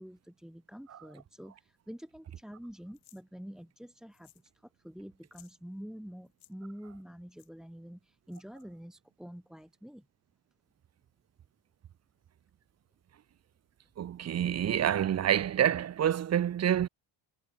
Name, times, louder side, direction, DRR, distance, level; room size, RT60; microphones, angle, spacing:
voice 1, 0.0-10.1, equal, ahead, 1.2 m, -47 dB
sound 1, 2.9-3.2 4.1-4.5 4.8-4.9 5.2-5.6 6.2-6.5 7.4-7.5 8.3-8.6, left 16 dB, 75° left, 6.1 m, -61 dB
voice 2, 14.0-16.9, right 10 dB, 35° right, 0.8 m, -27 dB
cardioid pair, 145°, 48 cm